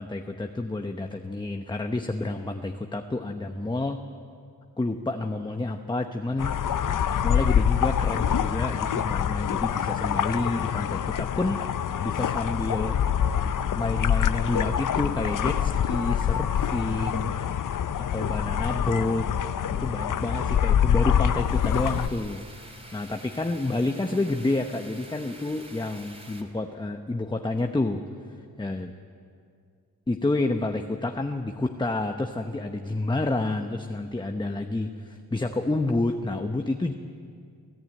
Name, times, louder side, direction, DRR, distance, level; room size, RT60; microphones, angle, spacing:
voice 1, 0.0-4.0 4.8-6.6 7.2-11.6 12.0-13.0 13.7-17.3 18.0-19.3 19.7-22.4 22.9-28.0 28.6-28.9 30.1-36.9, left 2 dB, 15° left, 5 dB, 0.9 m, -29 dB
sound 1, 6.4-22.1, left 9 dB, 65° left, 0.8 m, -25 dB
sound 2, 21.3-26.4, right 1 dB, 15° right, 2.9 m, -48 dB
23.5 x 14.0 x 8.9 m, 2.3 s
cardioid pair, 80°, 35 cm